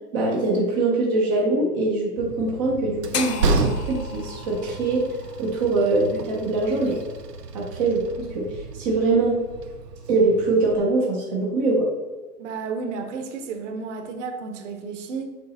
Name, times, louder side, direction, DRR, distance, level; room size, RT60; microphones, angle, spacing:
voice 1, 0.1-5.0 5.4-7.0 7.5-8.5 8.7-9.4 10.1-11.9, right 3 dB, 15° right, -2 dB, 0.4 m, -23 dB
Train, 2.2-10.8, right 3 dB, 90° right, 0.8 m, -31 dB
sound 1, 3.1-7.3, left 7 dB, 85° left, 1.0 m, -35 dB
voice 2, 12.4-15.3, right 5 dB, 50° right, 6 dB, 1.1 m, -32 dB
6.9 x 4.7 x 4.0 m, 1.3 s
hypercardioid pair, 125°, 47 cm